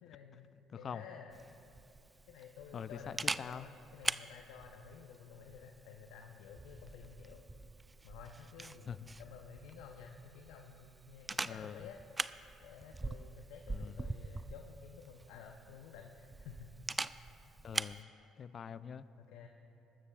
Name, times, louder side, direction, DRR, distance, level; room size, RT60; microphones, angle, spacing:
voice 1, 0.0-1.6 2.3-7.4 8.0-12.0 12.6-16.7 19.2-19.5, left 6 dB, 80° left, 3 dB, 0.7 m, -52 dB
voice 2, 0.7-1.0 2.7-3.7 8.9-9.1 11.5-11.9 13.7-13.9 17.6-18.1 18.4-19.1, left 7 dB, 50° left, 16 dB, 0.3 m, -44 dB
Camera, 1.3-18.0, right 3 dB, 25° right, 0.4 m, -44 dB
20.5 x 13.5 x 2.4 m, 2.9 s
hypercardioid pair, 60°, 0 cm